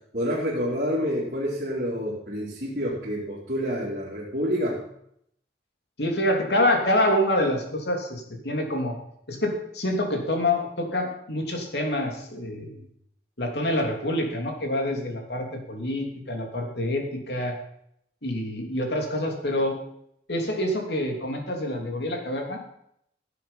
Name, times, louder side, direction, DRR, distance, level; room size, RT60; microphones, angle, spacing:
voice 1, 0.1-4.8, equal, 55° right, -8 dB, 3.9 m, -28 dB
voice 2, 6.0-9.0 9.3-12.8 13.4-17.6 18.2-19.8 20.3-22.6, left 1 dB, 65° left, 2 dB, 3.0 m, -26 dB
16.0 x 8.4 x 5.7 m, 0.72 s
head